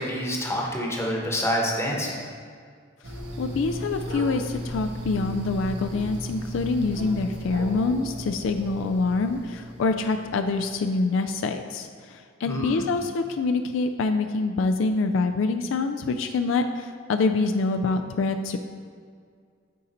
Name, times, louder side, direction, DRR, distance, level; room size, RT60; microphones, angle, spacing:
voice 1, 0.0-2.2 12.5-12.8, equal, 15° left, -1 dB, 1.0 m, -27 dB
sound 1, 3.0-10.7, equal, 65° right, 1.0 m, -36 dB
voice 2, 3.4-18.6, left 3 dB, 75° left, 7 dB, 0.4 m, -25 dB
9.2 x 3.9 x 4.2 m, 2.1 s
head